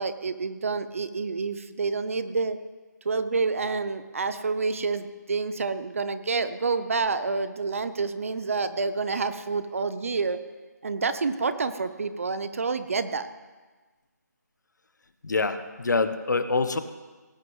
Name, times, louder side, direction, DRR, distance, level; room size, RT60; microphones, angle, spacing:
voice 1, 0.0-2.6 3.0-10.4 10.8-13.3, right 4 dB, 45° right, 12 dB, 0.8 m, -28 dB
voice 2, 15.2-16.8, left 3 dB, 75° left, 10 dB, 1.1 m, -25 dB
17.5 x 6.6 x 8.0 m, 1.3 s
figure-of-eight pair, 170°, 10 cm